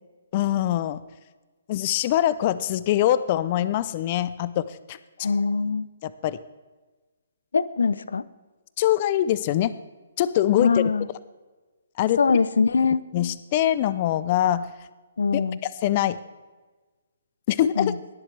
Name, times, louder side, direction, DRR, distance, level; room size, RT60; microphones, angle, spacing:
voice 1, 0.3-1.0 1.7-5.0 6.0-6.4 8.8-9.7 10.2-10.8 12.0-12.4 13.1-14.7 15.3-15.4 15.8-16.2 17.5-17.9, left 12 dB, 35° left, 16 dB, 0.4 m, -23 dB
voice 2, 5.2-5.9 7.5-8.2 10.6-11.1 12.2-13.0 15.2-15.6 17.8-18.0, left 5 dB, 85° left, 18 dB, 0.6 m, -22 dB
20.5 x 7.5 x 3.3 m, 1.3 s
hypercardioid pair, 155°, 0 cm